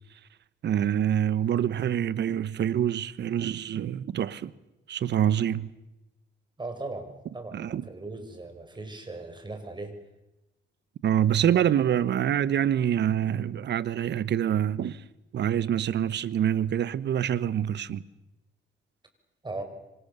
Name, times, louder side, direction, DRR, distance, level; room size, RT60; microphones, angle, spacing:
voice 1, 0.6-4.5 4.9-5.7 7.5-7.8 11.0-15.0 15.3-18.0, right 10 dB, 60° right, 1.2 m, -26 dB
voice 2, 6.6-9.9 19.4-19.6, right 2 dB, 20° right, 6.0 m, -38 dB
26.5 x 26.0 x 6.9 m
cardioid pair, 90°, 20 cm